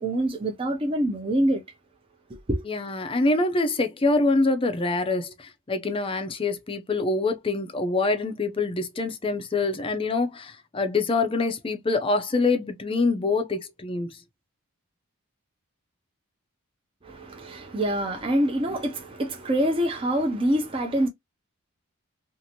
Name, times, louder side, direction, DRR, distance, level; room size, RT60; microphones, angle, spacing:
voice 1, 0.0-1.6 2.3-2.6 17.0-21.1, right 1 dB, 25° right, 0.6 m, -25 dB
voice 2, 2.7-14.1, left 3 dB, 25° left, 0.5 m, -25 dB
2.8 x 2.5 x 2.8 m
head